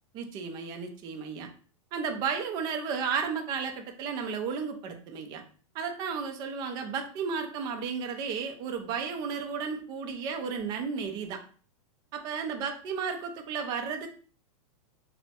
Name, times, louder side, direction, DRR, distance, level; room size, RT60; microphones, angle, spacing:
voice 1, 0.1-1.5 1.9-5.4 5.7-11.4 12.1-14.1, right 6 dB, 20° right, 5 dB, 0.4 m, -33 dB
3.2 x 2.0 x 2.8 m, 0.41 s
supercardioid pair, 155°, 18 cm